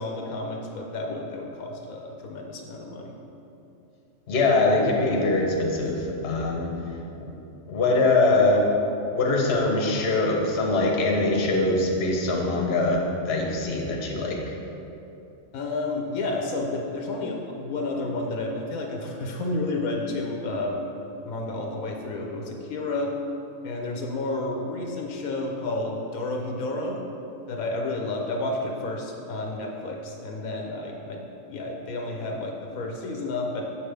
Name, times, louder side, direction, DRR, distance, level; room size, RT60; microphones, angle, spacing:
voice 1, 0.0-3.1 15.5-20.9 21.3-23.1 23.6-27.0 27.5-31.2 31.5-33.6, left 2 dB, 85° left, 1 dB, 1.2 m, -31 dB
voice 2, 4.3-6.7 7.2-7.3 7.7-8.7 9.1-14.5, left 2 dB, 50° left, -1 dB, 1.1 m, -23 dB
7.3 x 5.8 x 3.4 m, 2.8 s
omnidirectional pair, 1.4 m